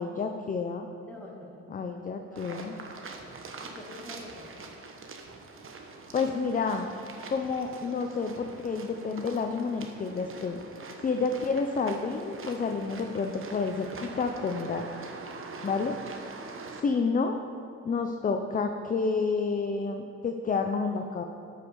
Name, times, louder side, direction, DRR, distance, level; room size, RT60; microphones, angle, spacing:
voice 1, 0.0-0.9 1.7-2.7 6.1-6.9 7.3-10.6 11.0-14.9 15.6-16.0 16.8-17.4 17.8-21.2, left 4 dB, 30° left, 5 dB, 0.5 m, -29 dB
voice 2, 1.0-1.7 2.3-2.9 3.6-4.5, left 1 dB, 5° left, -4 dB, 2.4 m, -46 dB
sound 1, 2.4-16.8, right 3 dB, 45° right, 1.1 m, -44 dB
13.0 x 5.4 x 4.7 m, 2.5 s
cardioid pair, 90°, 30 cm